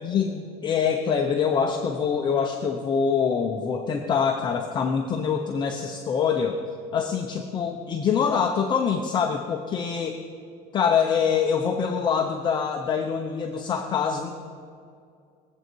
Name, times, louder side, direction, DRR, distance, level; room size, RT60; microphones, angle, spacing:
voice 1, 0.0-6.6 6.9-10.2 10.7-14.3, left 6 dB, 25° left, 2 dB, 0.8 m, -25 dB
22.0 x 8.0 x 4.6 m, 2.3 s
cardioid pair, 160°, 19 cm